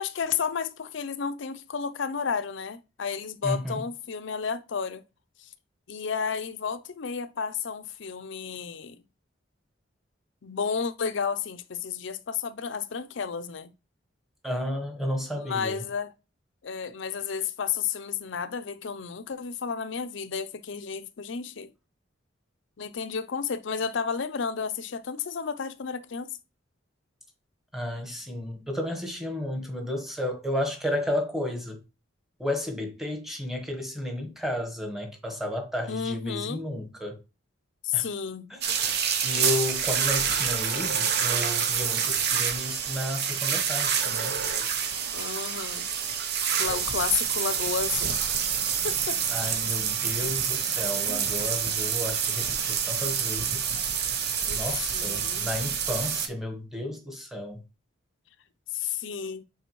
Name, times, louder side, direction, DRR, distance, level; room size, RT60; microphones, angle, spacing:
voice 1, 0.0-5.0 5.9-9.0 10.4-13.7 15.4-16.1 16.6-21.7 22.8-26.3 35.9-36.6 37.8-38.5 45.1-45.9 46.6-48.2 48.8-49.2 51.1-51.2 54.5-54.6 54.9-55.6 58.7-59.4, left 6 dB, 60° left, 0.5 m, -32 dB
voice 2, 3.4-3.8 14.4-15.8 27.7-31.8 32.4-37.2 37.9-38.1 38.5-38.6 39.2-44.4 49.3-53.7 54.5-57.6, left 1 dB, ahead, 1.2 m, -32 dB
sound 1, 38.6-56.3, right 7 dB, 55° right, 0.8 m, -27 dB
6.8 x 4.9 x 3.1 m
head